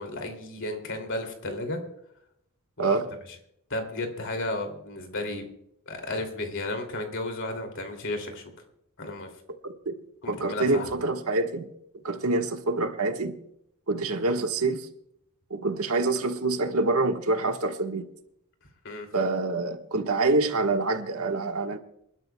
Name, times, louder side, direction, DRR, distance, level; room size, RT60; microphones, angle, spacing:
voice 1, 0.0-1.8 2.8-3.0 3.7-5.5 5.9-8.4 9.0-9.3 10.2-10.9 18.8-19.1, left 2 dB, 60° left, 2.6 m, -33 dB
voice 2, 10.3-11.7 12.0-13.4 13.9-14.9 15.5-18.1 19.1-21.8, right 3 dB, 75° right, 1.4 m, -26 dB
27.5 x 12.0 x 2.2 m
head